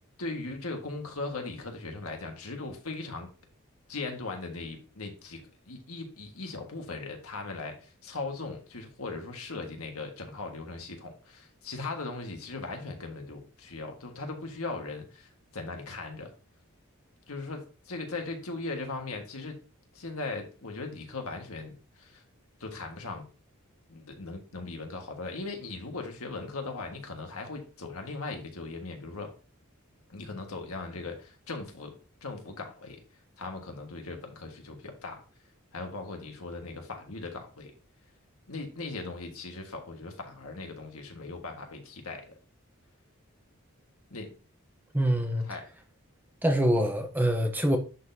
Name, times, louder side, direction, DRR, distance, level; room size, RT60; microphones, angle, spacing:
voice 1, 0.2-3.3 3.9-5.4 5.7-16.3 17.3-19.6 19.9-22.2 22.6-23.2 23.9-29.3 30.1-31.9 32.2-33.0 33.4-35.2 35.7-37.7 38.5-42.4 44.1-44.3 45.4-45.6, left 3 dB, 85° left, 1.5 m, -39 dB
voice 2, 44.9-45.5 46.4-47.8, equal, 10° right, 0.7 m, -25 dB
11.0 x 4.1 x 2.7 m
head